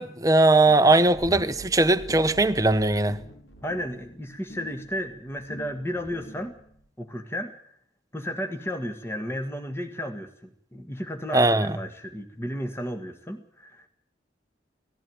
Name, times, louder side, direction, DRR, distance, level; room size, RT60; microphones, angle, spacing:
voice 1, 0.0-3.2 11.3-11.8, right 2 dB, 20° right, 1.0 m, -20 dB
sound 1, 0.7-6.9, right 1 dB, 85° left, 5.0 m, -44 dB
voice 2, 3.6-6.5 7.0-7.8 8.1-13.9, equal, 15° left, 1.7 m, -33 dB
18.5 x 15.0 x 9.3 m
head